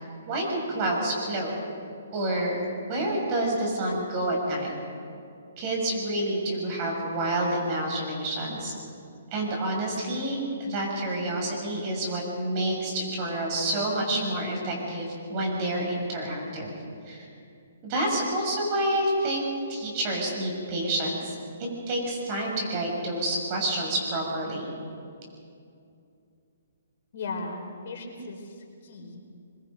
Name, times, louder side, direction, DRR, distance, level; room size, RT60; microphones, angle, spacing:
voice 1, 0.3-1.5 2.1-2.6 2.9-4.7 5.6-8.7 9.3-16.7 17.0-17.3 17.8-19.4 19.7-21.4 21.9-24.7, right 1 dB, 35° right, -1 dB, 7.1 m, -28 dB
voice 2, 27.1-29.3, left 3 dB, 55° left, 1 dB, 4.3 m, -37 dB
23.5 x 23.0 x 5.3 m, 2.5 s
hypercardioid pair, 145°, 0 cm